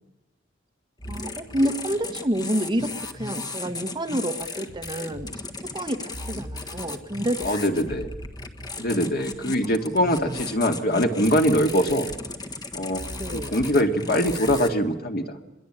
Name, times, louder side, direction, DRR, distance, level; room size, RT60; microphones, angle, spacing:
sound 1, 1.0-14.7, left 2 dB, 20° left, 1.6 m, -36 dB
voice 1, 1.1-5.3 5.7-7.8 13.2-13.5, equal, 25° right, 7 dB, 1.3 m, -28 dB
voice 2, 7.4-8.1 8.8-12.1 12.7-15.4, equal, 50° left, 5 dB, 2.2 m, -23 dB
25.5 x 22.0 x 8.9 m, 1.0 s
head